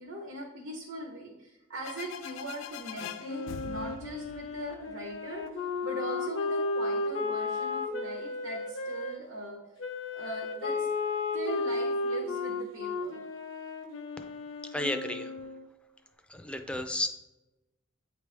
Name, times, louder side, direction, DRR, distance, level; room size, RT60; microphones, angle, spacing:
voice 1, 0.0-5.5 5.8-9.6 10.1-10.9 11.3-13.2, right 1 dB, 90° right, -2 dB, 1.0 m, -40 dB
sound 1, 1.8-5.5, left 7 dB, 90° left, 0.4 m, -44 dB
Wind instrument woodwind instrument, 3.2-9.1 9.8-15.7, left 3 dB, 70° left, 0.7 m, -34 dB
voice 2, 14.7-15.4 16.3-17.1, left 1 dB, 5° left, 6 dB, 0.4 m, -32 dB
8.6 x 3.3 x 3.4 m, 1.0 s
head